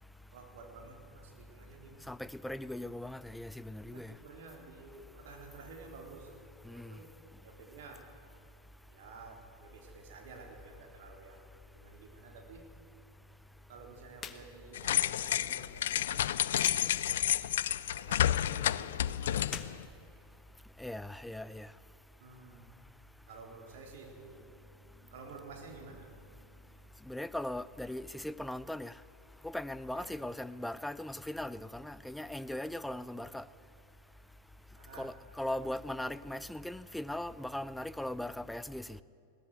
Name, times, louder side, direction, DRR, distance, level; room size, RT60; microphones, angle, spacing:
voice 1, 0.3-2.1 3.8-7.1 7.4-8.1 8.9-12.7 13.7-17.0 17.9-19.7 22.2-22.8 23.3-26.9 29.9-30.1 33.1-33.2 34.8-35.1, right 4 dB, 55° right, 4.0 m, -52 dB
voice 2, 2.1-4.1 6.7-6.9 20.8-21.7 27.1-28.9 29.4-33.4 34.9-39.0, left 1 dB, 5° left, 0.6 m, -39 dB
sound 1, 14.1-14.4 14.7-14.8 16.6-16.8 19.4-20.7, left 6 dB, 20° left, 1.4 m, -45 dB
sound 2, 14.7-19.8, left 11 dB, 60° left, 0.4 m, -30 dB
21.5 x 17.0 x 8.1 m
figure-of-eight pair, 90°, 0 cm